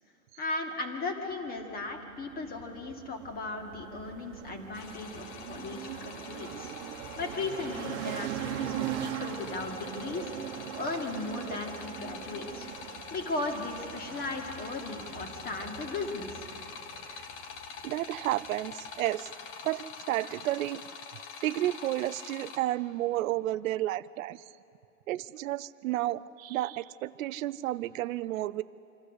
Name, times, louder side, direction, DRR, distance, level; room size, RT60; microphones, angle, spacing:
voice 1, 0.4-6.7 7.2-12.7 13.1-16.5, left 3 dB, 20° left, 3 dB, 2.1 m, -37 dB
sound 1, 1.6-19.0, right 12 dB, 60° right, 1.2 m, -41 dB
sound 2, 4.7-22.6, left 6 dB, 60° left, 1.8 m, -45 dB
voice 2, 17.8-19.3 19.6-20.8 21.4-24.4 25.1-28.6, right 15 dB, 80° right, 15 dB, 0.6 m, -31 dB
26.0 x 12.5 x 8.1 m, 2.7 s
supercardioid pair, 145°, 40 cm